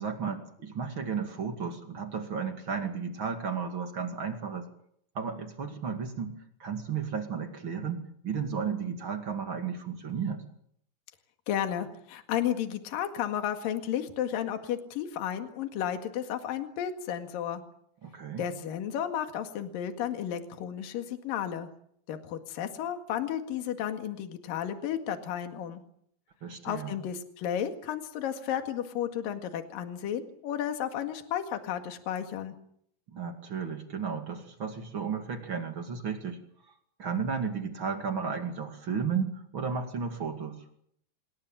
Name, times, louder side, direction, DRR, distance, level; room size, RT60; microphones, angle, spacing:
voice 1, 0.0-4.7 5.1-6.3 6.6-10.4 18.0-18.5 26.4-26.9 33.1-36.4 37.0-40.6, right 6 dB, 35° right, 6 dB, 2.3 m, -33 dB
voice 2, 11.5-17.6 18.4-21.7 22.1-25.8 26.6-32.5, left 10 dB, 60° left, 7 dB, 3.4 m, -33 dB
26.5 x 21.5 x 7.5 m, 0.69 s
omnidirectional pair, 5.0 m